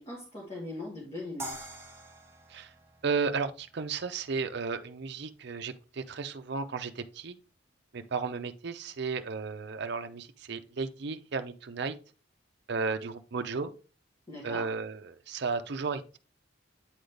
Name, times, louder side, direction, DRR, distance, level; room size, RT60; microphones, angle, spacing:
voice 1, 0.0-1.7 14.3-14.7, left 2 dB, 30° left, 1.6 m, -40 dB
sound 1, 1.4-4.5, right 1 dB, 15° right, 1.1 m, -45 dB
voice 2, 3.0-7.4 7.9-12.0 12.7-13.7 14.4-16.2, right 4 dB, 60° right, 0.6 m, -34 dB
8.7 x 3.9 x 3.3 m
head